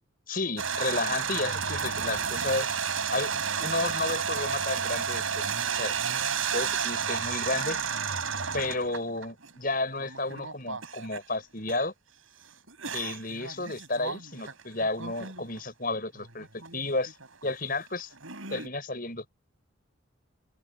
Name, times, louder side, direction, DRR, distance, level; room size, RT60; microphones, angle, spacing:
voice 1, 0.3-2.8 3.1-5.9 6.5-7.8 8.5-11.9 12.8-16.5 16.7-17.2 17.4-18.1 18.5-19.2, left 2 dB, 45° left, 7.2 m, -32 dB
sound 1, 0.6-9.5 10.0-11.2 11.7-11.8 12.7-15.6 16.2-16.8 17.1-18.7, right 6 dB, 85° right, 6.4 m, -32 dB
open air
head